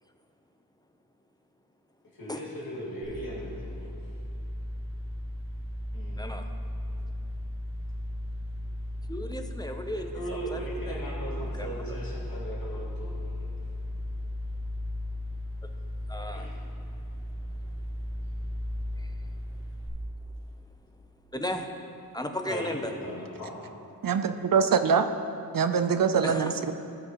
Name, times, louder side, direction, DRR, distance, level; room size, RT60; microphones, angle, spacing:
voice 1, 2.1-3.9 5.9-6.2 10.0-13.5 16.3-16.6 22.4-23.6, equal, 65° left, -6 dB, 2.2 m, -38 dB
sound 1, 3.0-19.9, left 1 dB, 35° right, 1.5 m, -36 dB
voice 2, 9.1-10.1 10.5-10.6 10.9-11.0 11.6-11.7 16.1-16.5 19.0-19.1 21.3-21.7 22.1-22.9 26.2-26.5, left 1 dB, 10° left, 5 dB, 0.6 m, -34 dB
voice 3, 24.0-25.1 25.5-26.7, right 6 dB, 60° right, 9 dB, 0.5 m, -24 dB
18.0 x 6.1 x 3.0 m, 2.6 s
wide cardioid pair, 100°, 38 cm